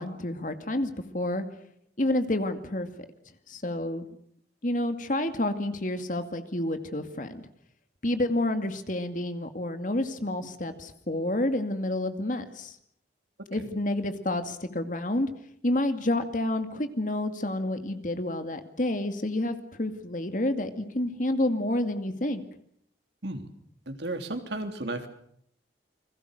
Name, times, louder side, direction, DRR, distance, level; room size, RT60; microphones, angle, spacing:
voice 1, 0.0-1.5 2.0-2.9 3.5-4.1 4.6-7.4 8.0-12.7 13.5-15.3 15.6-22.4, left 1 dB, 50° left, 8 dB, 2.3 m, -29 dB
voice 2, 23.9-25.1, right 2 dB, 80° right, 7 dB, 3.1 m, -34 dB
29.5 x 22.0 x 6.6 m, 0.68 s
head